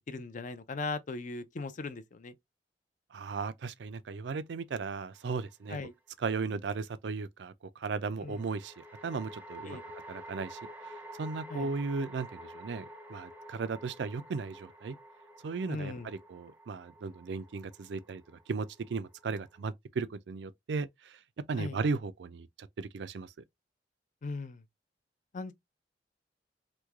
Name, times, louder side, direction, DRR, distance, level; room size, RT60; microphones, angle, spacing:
voice 1, 0.1-2.3 5.7-5.9 8.2-8.4 9.7-9.8 11.5-11.7 15.7-16.1 21.6-21.8 24.2-24.6 25.3-25.5, left 3 dB, 45° left, 0.5 m, -38 dB
voice 2, 3.1-5.8 6.2-9.8 10.1-15.0 15.4-21.2 21.5-23.3, right 4 dB, 70° right, 0.4 m, -36 dB
sound 1, 5.2-5.9 8.3-19.6, right 1 dB, 10° right, 0.6 m, -49 dB
3.1 x 2.2 x 3.5 m
head